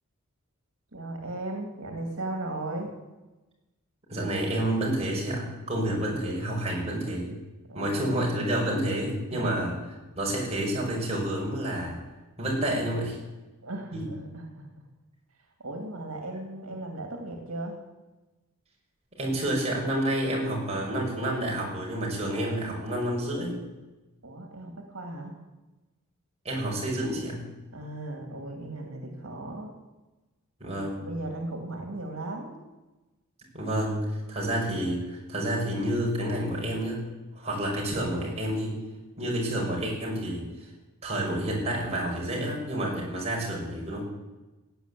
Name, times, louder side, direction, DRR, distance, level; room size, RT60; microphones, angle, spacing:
voice 1, 0.9-2.9 7.7-7.9 9.3-9.8 13.6-14.9 15.3-17.8 24.2-25.4 27.7-29.8 30.6-32.6, right 2 dB, 85° right, 4 dB, 2.4 m, -37 dB
voice 2, 4.1-7.3 7.7-9.8 10.2-12.0 12.4-13.2 13.9-14.1 19.2-23.6 26.4-27.4 30.6-31.0 33.5-37.1 37.4-38.8 39.2-40.7 41.0-44.0, right 1 dB, 30° right, -3 dB, 5.6 m, -29 dB
16.0 x 9.4 x 8.3 m, 1.1 s
head